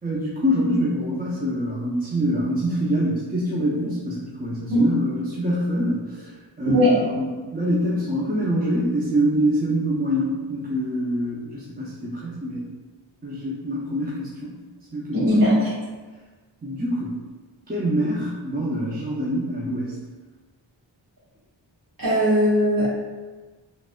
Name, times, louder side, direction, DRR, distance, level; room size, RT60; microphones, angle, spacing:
voice 1, 0.0-12.7 13.2-14.5 14.9-15.4 16.6-17.1 17.7-20.0, equal, 20° right, -7 dB, 0.6 m, -25 dB
voice 2, 15.1-15.7 22.0-22.9, equal, 50° right, -9 dB, 1.5 m, -18 dB
3.9 x 2.5 x 2.2 m, 1.3 s
wide cardioid pair, 60°, 45 cm